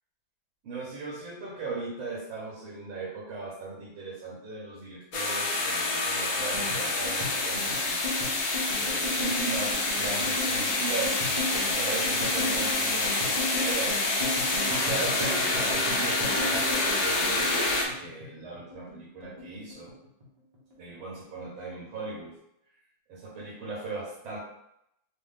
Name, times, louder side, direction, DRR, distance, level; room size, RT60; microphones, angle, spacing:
voice 1, 0.6-8.2 8.8-19.9 20.8-22.4 23.1-24.4, right 3 dB, 75° right, -5 dB, 1.7 m, -38 dB
sound 1, 5.1-17.9, left 2 dB, 65° left, 1.1 m, -27 dB
sound 2, 6.4-19.0 19.2-20.3 20.5-20.9 21.2-21.9, left 1 dB, 35° right, 0.6 m, -36 dB
4.2 x 2.2 x 3.6 m, 0.80 s
omnidirectional pair, 2.3 m